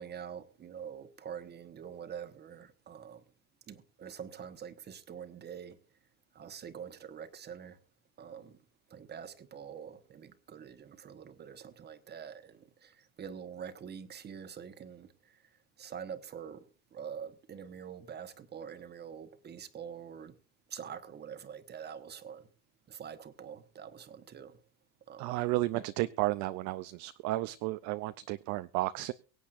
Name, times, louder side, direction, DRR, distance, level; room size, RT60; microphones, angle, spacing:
voice 1, 0.0-3.2 3.7-5.8 6.3-7.8 8.2-8.6 8.9-15.5 15.8-16.6 16.9-20.3 20.7-22.5 22.9-24.6 25.1-25.4 25.7-25.9, right 8 dB, 25° right, 1.2 m, -45 dB
voice 2, 25.2-29.1, right 17 dB, 45° right, 0.5 m, -33 dB
23.5 x 8.3 x 2.5 m
supercardioid pair, 135°, 44 cm